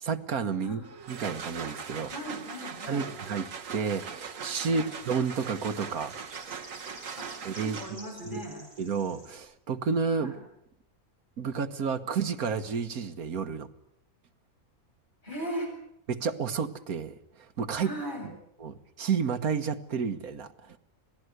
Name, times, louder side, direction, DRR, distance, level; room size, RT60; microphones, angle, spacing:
voice 1, 0.0-0.8 1.1-2.1 2.9-6.1 7.4-7.8 8.3-8.4 8.8-10.3 11.4-13.7 16.1-17.1 17.6-17.9 18.6-20.8, right 5 dB, 80° right, 9 dB, 1.8 m, -31 dB
sound 1, 0.8-8.2, right 6 dB, 65° right, 1.7 m, -40 dB
voice 2, 2.1-3.1 4.6-4.9 7.2-7.3 7.6-8.7 10.2-10.4 15.2-15.7 17.8-18.3, equal, 30° left, 0 dB, 8.1 m, -38 dB
sound 2, 3.2-9.4, equal, 15° right, 8.1 m, -52 dB
26.0 x 18.0 x 8.0 m, 0.76 s
omnidirectional pair, 1.5 m